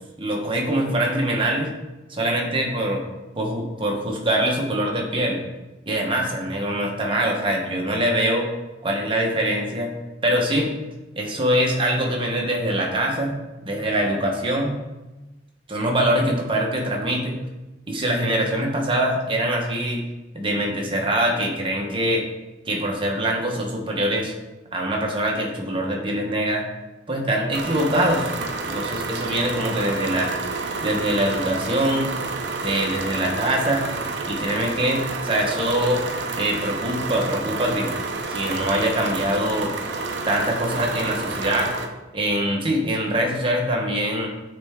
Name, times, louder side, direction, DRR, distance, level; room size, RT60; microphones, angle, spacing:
voice 1, 0.2-1.7 2.1-3.0 3.3-5.4 5.9-8.5 8.8-9.9 10.2-10.7 11.2-13.4 13.6-14.8 15.7-17.3 17.9-20.0 20.3-22.3 22.7-24.3 24.7-26.7 27.1-28.3 28.6-30.3 30.8-32.1 32.6-33.8 34.3-36.0 36.4-37.9 38.3-39.8 40.2-41.8 42.1-44.3, right 1 dB, 25° right, 0 dB, 1.0 m, -23 dB
sound 1, 27.5-41.9, right 3 dB, 65° right, 0.7 m, -29 dB
8.8 x 3.4 x 3.6 m, 1.1 s
head